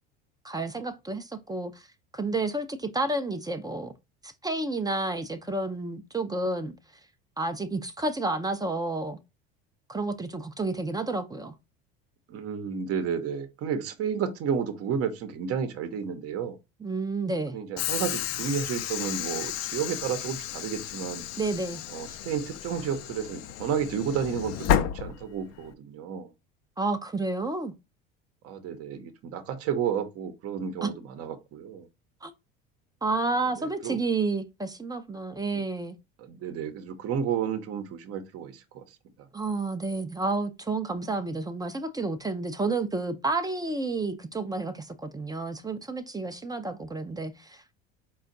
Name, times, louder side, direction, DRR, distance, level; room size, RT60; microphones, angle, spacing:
voice 1, 0.4-1.9 2.1-3.9 4.2-6.8 7.4-9.2 9.9-11.5 16.8-17.6 21.4-21.8 26.8-27.7 30.8-30.9 32.2-32.3 33.0-36.0 39.3-47.7, right 3 dB, 15° right, 0.5 m, -30 dB
voice 2, 12.3-16.6 17.5-21.2 21.9-26.3 28.4-31.9 33.6-34.0 36.2-38.8, right 7 dB, 50° right, 0.8 m, -31 dB
Train / Sliding door, 17.8-25.7, left 11 dB, 60° left, 0.5 m, -32 dB
4.3 x 2.3 x 3.7 m
supercardioid pair, 90°, 30 cm